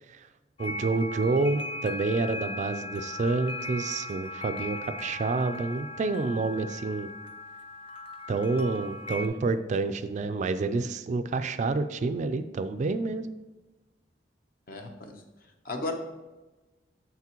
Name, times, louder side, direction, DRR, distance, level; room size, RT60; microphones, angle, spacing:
sound 1, 0.6-9.3, left 2 dB, 30° left, 0.4 m, -38 dB
voice 1, 0.6-7.1 8.3-13.3, right 3 dB, 40° right, 11 dB, 0.3 m, -28 dB
voice 2, 14.7-15.2 15.6-15.9, left 2 dB, 55° left, 4 dB, 0.8 m, -34 dB
7.4 x 5.9 x 2.9 m, 1.1 s
head